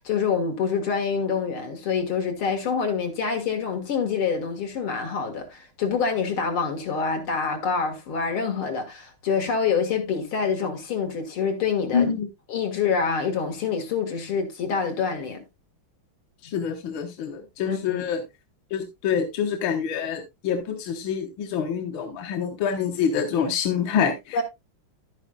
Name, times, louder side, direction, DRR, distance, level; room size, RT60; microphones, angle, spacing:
voice 1, 0.0-12.1 12.5-15.4 16.5-16.6 17.7-18.0 24.3-24.4, left 5 dB, 85° left, 2.7 m, -26 dB
voice 2, 11.9-12.3 16.4-18.2 18.7-24.4, left 7 dB, 70° left, 1.9 m, -26 dB
11.0 x 9.7 x 2.3 m
omnidirectional pair, 2.3 m